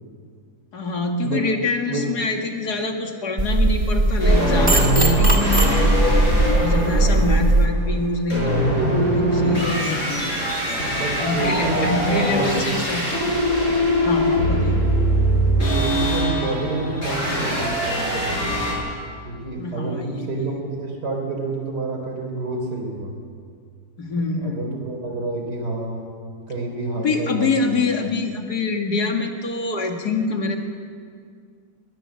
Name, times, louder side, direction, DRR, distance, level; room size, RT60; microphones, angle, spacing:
voice 1, 0.7-5.9 6.5-10.3 11.2-13.0 14.0-14.8 19.6-20.5 24.0-24.8 27.0-30.6, left 3 dB, 75° left, 3 dB, 2.6 m, -25 dB
sound 1, 3.4-7.7, right 2 dB, 25° right, 2.2 m, -18 dB
sound 2, 4.2-18.7, equal, 50° left, 8.2 m, -22 dB
voice 2, 7.0-7.3 10.8-12.7 14.4-14.7 15.7-18.5 19.2-23.1 24.4-26.0 26.5-27.8, right 2 dB, 80° right, 2 dB, 4.5 m, -28 dB
22.5 x 18.5 x 7.6 m, 2.1 s
omnidirectional pair, 1.7 m